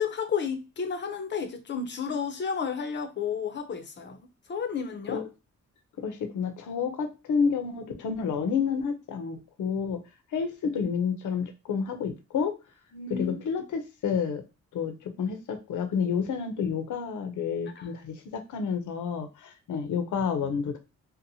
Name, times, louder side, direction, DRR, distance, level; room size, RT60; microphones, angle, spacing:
voice 1, 0.0-5.2 12.9-13.4 17.8-17.9, left 6 dB, 35° left, 0.6 m, -32 dB
voice 2, 6.0-10.0 10.3-12.5 13.1-14.4 14.7-20.8, left 6 dB, 80° left, 0.7 m, -30 dB
2.8 x 2.1 x 2.7 m
cardioid pair, 115°, 30 cm